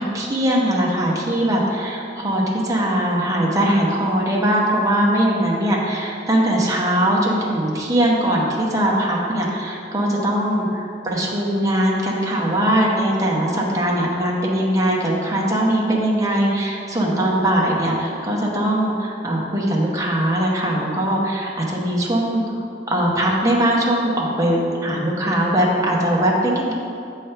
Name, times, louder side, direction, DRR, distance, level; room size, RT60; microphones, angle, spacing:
voice 1, 0.0-22.4 22.9-26.7, right 1 dB, 20° right, -3 dB, 0.9 m, -20 dB
7.3 x 3.3 x 5.6 m, 2.6 s
head